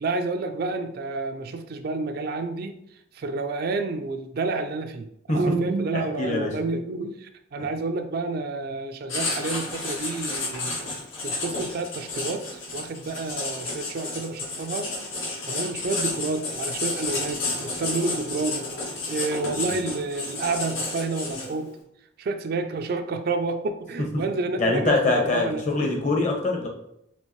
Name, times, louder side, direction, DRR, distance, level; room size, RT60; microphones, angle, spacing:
voice 1, 0.0-2.8 3.1-10.7 11.2-14.9 15.5-18.7 19.1-21.7 22.2-25.6, right 3 dB, 50° right, 7 dB, 0.3 m, -29 dB
voice 2, 6.2-6.5 19.6-19.7 24.6-26.7, left 2 dB, 35° left, 1 dB, 0.8 m, -23 dB
Writing, 9.1-21.7, left 2 dB, 85° left, 1.6 m, -31 dB
4.5 x 3.4 x 3.0 m, 0.76 s
head